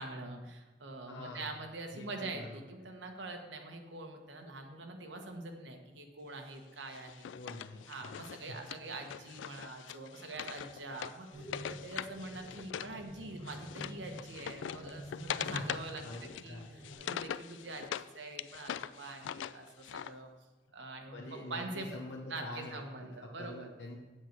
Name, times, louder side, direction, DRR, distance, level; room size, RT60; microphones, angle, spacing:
voice 1, 0.0-7.3 7.9-17.9 18.1-20.3 20.7-21.9 22.3-23.7, right 2 dB, 75° right, 3 dB, 1.3 m, -44 dB
voice 2, 1.1-1.6 1.9-2.6 7.3-8.6 15.5-16.7 21.1-24.0, left 2 dB, 70° left, -2 dB, 1.0 m, -46 dB
Wood, 6.9-13.0 13.2-18.1 18.4-20.1, left 9 dB, 90° left, 0.3 m, -42 dB
sound 1, 11.3-16.9, right 1 dB, 25° right, 2.4 m, -49 dB
8.2 x 7.9 x 4.6 m, 1.2 s
head